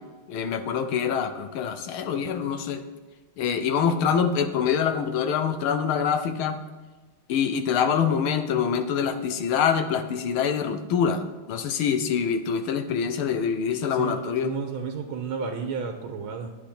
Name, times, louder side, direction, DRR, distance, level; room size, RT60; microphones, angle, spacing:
voice 1, 0.3-2.8 3.4-6.6 7.3-11.2 11.5-14.5, left 7 dB, 80° left, 8 dB, 1.7 m, -25 dB
voice 2, 13.9-16.6, right 5 dB, 75° right, 4 dB, 1.7 m, -32 dB
10.5 x 8.2 x 4.3 m, 1.3 s
omnidirectional pair, 2.3 m